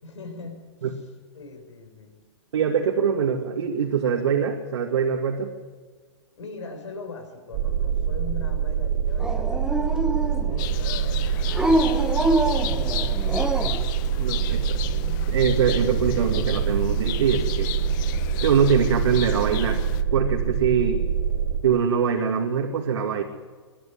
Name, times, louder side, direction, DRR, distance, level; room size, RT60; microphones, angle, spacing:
voice 1, 0.0-2.2 6.4-13.6, left 4 dB, 75° left, 5 dB, 6.1 m, -41 dB
voice 2, 2.5-5.5 14.2-17.7 18.4-19.8 20.1-21.0 21.6-23.2, right 7 dB, 70° right, 1 dB, 2.4 m, -23 dB
sound 1, 7.5-21.6, right 8 dB, 45° right, 3.0 m, -25 dB
Dog, 9.2-10.7 11.5-13.9, right 1 dB, 5° right, 1.2 m, -25 dB
sound 2, 10.6-20.0, left 14 dB, 40° left, 0.9 m, -34 dB
22.5 x 12.0 x 9.7 m, 1.5 s
hypercardioid pair, 125°, 15 cm